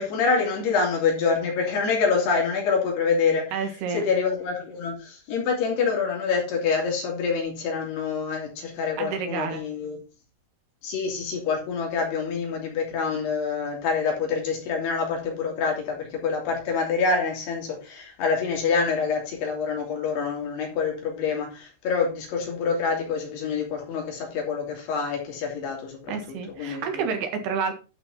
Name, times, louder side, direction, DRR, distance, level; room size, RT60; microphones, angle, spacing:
voice 1, 0.0-3.7 3.9-10.0 10.8-27.0, left 5 dB, 80° left, 5.1 m, -26 dB
voice 2, 3.5-4.0 9.0-9.6 26.1-27.7, right 6 dB, 75° right, 3.5 m, -29 dB
11.5 x 6.2 x 4.2 m
omnidirectional pair, 4.7 m